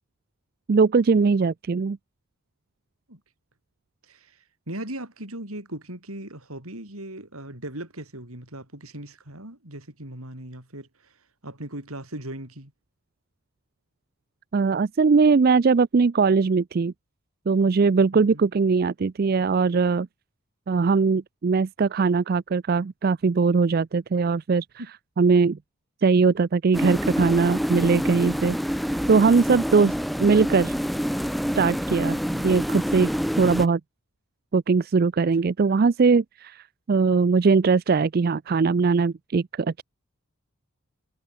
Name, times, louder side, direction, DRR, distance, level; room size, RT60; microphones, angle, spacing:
voice 1, 0.7-2.0 14.5-16.9 17.5-20.1 20.7-24.7 25.2-25.6 26.0-28.6 29.1-30.7 31.6-32.2 32.4-33.8 34.5-39.8, right 4 dB, 45° right, 0.4 m, -21 dB
voice 2, 4.1-4.4 4.7-11.1 11.4-12.7 18.1-18.4 24.8-24.9, right 1 dB, 80° right, 7.3 m, -38 dB
sound 1, 26.7-33.7, equal, ahead, 1.1 m, -27 dB
head